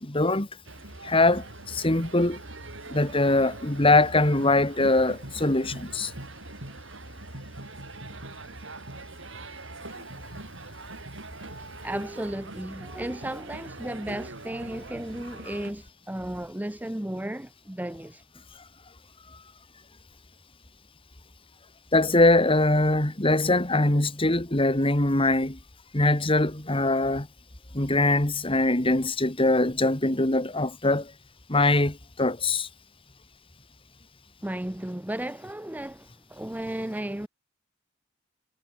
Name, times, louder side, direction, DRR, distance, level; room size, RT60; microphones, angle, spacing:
voice 1, 0.0-0.5 1.0-2.4 2.9-6.1 21.9-25.6 25.9-27.3 27.7-31.1 31.5-32.7, left 2 dB, 25° left, 2.2 m, -22 dB
sound 1, 0.7-15.7, right 2 dB, 65° right, 5.6 m, -42 dB
voice 2, 11.8-18.2 34.4-37.3, right 1 dB, 10° right, 0.7 m, -34 dB
head